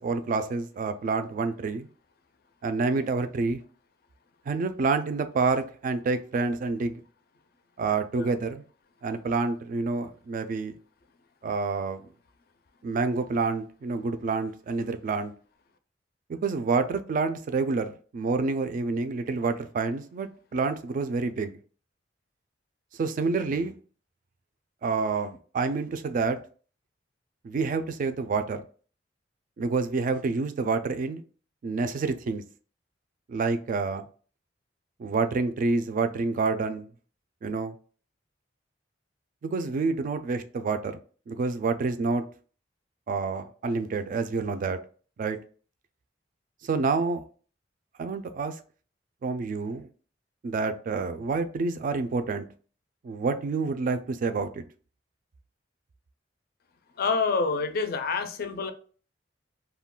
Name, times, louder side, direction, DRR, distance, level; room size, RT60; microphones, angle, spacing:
voice 1, 0.0-1.9 2.6-3.6 4.5-7.0 7.8-8.6 9.0-10.8 11.4-12.0 12.8-15.3 16.3-21.6 23.0-23.7 24.8-26.4 27.4-28.6 29.6-31.2 31.6-32.4 33.3-34.0 35.0-36.9 37.4-37.7 39.4-41.0 41.3-42.2 43.1-44.8 45.2-45.4 46.6-47.2 48.0-48.6 49.2-49.9 50.4-52.5 53.0-54.6, right 4 dB, 45° right, 0.3 m, -28 dB
voice 2, 57.0-58.7, left 4 dB, 55° left, 0.4 m, -27 dB
2.3 x 2.2 x 3.6 m
head